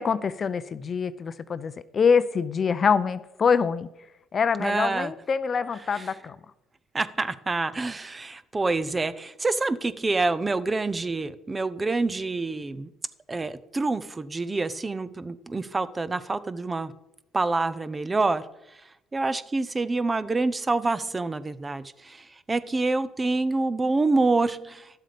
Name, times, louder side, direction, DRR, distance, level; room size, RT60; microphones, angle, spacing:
voice 1, 0.0-3.9 4.3-6.4, left 6 dB, 45° left, 15 dB, 0.6 m, -25 dB
voice 2, 4.6-5.1 5.9-6.1 6.9-12.9 13.3-16.9 17.3-18.4 19.1-24.9, right 3 dB, 25° right, 15 dB, 0.6 m, -27 dB
11.0 x 7.5 x 5.1 m, 0.89 s
supercardioid pair, 70°, 0 cm